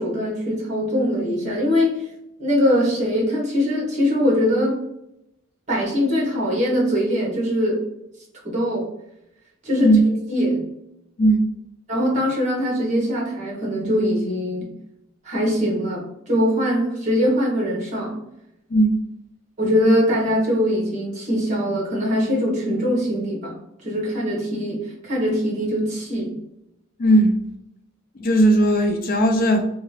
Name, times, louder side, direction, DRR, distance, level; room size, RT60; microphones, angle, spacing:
voice 1, 0.0-2.1 2.4-4.8 5.7-7.8 8.4-8.9 9.6-10.0 10.3-10.7 11.9-14.7 15.2-18.2 19.6-23.6 23.8-26.3, equal, 35° right, 1.2 m, -22 dB
voice 2, 27.0-27.4 28.2-29.6, right 1 dB, 40° left, 0.3 m, -17 dB
2.8 x 2.4 x 3.1 m
head